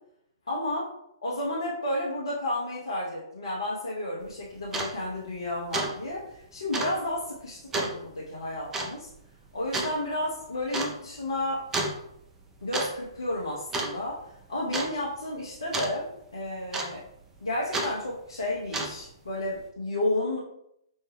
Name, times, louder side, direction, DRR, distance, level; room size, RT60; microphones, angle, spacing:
voice 1, 0.5-0.9 1.2-9.1 9.5-11.7 12.6-14.2 14.5-17.0 17.4-20.4, left 1 dB, 75° left, -6 dB, 0.9 m, -32 dB
sound 1, 4.2-4.3 4.7-4.9 5.3-5.5 5.7-5.9 6.2-6.3 6.7-7.0 7.7-8.0 8.7-8.9 9.7-9.9 10.7-10.9 11.7-12.0 12.5-12.9 13.2-13.4 13.7-14.2 14.7-14.9 15.7-15.9 16.7-17.1 17.7-17.9 18.6-19.1, right 2 dB, 15° right, 0.6 m, -30 dB
5.4 x 2.2 x 3.2 m, 0.78 s
figure-of-eight pair, 115°, 2 cm